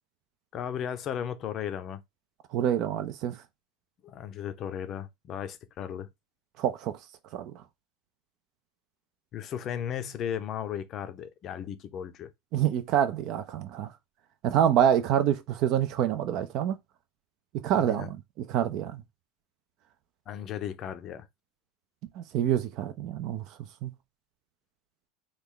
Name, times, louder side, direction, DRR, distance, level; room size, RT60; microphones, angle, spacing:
voice 1, 0.5-2.0 4.0-6.1 9.3-12.3 17.8-18.1 20.3-21.3, left 9 dB, 35° left, 0.5 m, -35 dB
voice 2, 2.5-3.4 6.6-6.9 7.3-7.5 12.5-13.9 14.4-16.8 17.6-19.0 22.2-23.4 23.8-23.9, right 10 dB, 50° right, 0.4 m, -26 dB
3.1 x 2.3 x 3.7 m
supercardioid pair, 130°, 0 cm